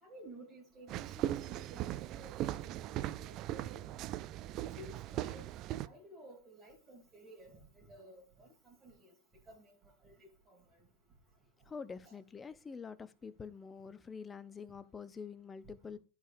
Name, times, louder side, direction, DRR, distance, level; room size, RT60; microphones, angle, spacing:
voice 1, 0.0-2.3 2.6-4.0 4.7-5.4 5.8-9.1 9.5-9.7 10.0-10.6 12.0-12.2, right 1 dB, 25° right, 3.0 m, -54 dB
sound 1, 0.9-5.9, right 13 dB, 40° right, 0.4 m, -39 dB
voice 2, 11.7-16.0, left 5 dB, 20° left, 0.7 m, -46 dB
14.0 x 4.9 x 2.5 m
figure-of-eight pair, 85°, 0 cm